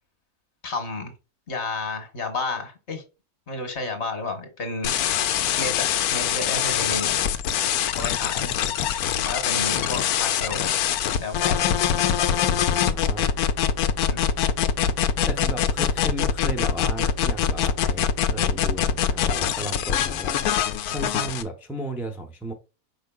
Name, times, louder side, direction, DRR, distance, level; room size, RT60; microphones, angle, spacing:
voice 1, 0.6-1.1 1.5-3.0 3.5-5.0 5.6-7.1 8.0-8.5 9.2-10.7 11.2-11.7 14.1-14.2, left 3 dB, 50° left, 1.4 m, -31 dB
sound 1, 4.8-21.4, left 9 dB, 85° left, 1.1 m, -23 dB
voice 2, 12.5-13.4 15.3-20.4 20.9-22.5, right 1 dB, ahead, 0.4 m, -34 dB
5.0 x 4.6 x 2.3 m
omnidirectional pair, 1.6 m